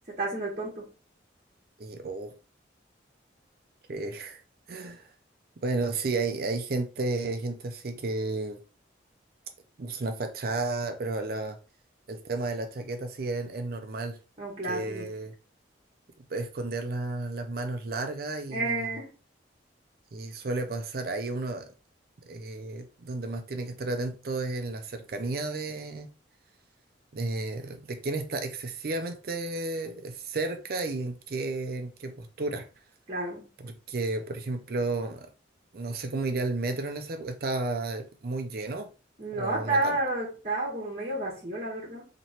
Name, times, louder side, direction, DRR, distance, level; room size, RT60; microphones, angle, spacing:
voice 1, 0.2-0.9 14.4-15.1 18.5-19.1 33.1-33.4 39.2-42.0, right 2 dB, 35° right, 1.0 m, -30 dB
voice 2, 1.8-2.3 3.9-4.4 4.7-5.1 5.6-8.6 9.8-11.6 12.1-14.2 14.6-15.3 16.3-19.0 20.1-21.7 22.2-26.1 27.1-32.7 33.6-35.3 35.7-38.9 39.3-40.0, right 2 dB, 50° right, 0.4 m, -32 dB
3.0 x 2.9 x 4.2 m
head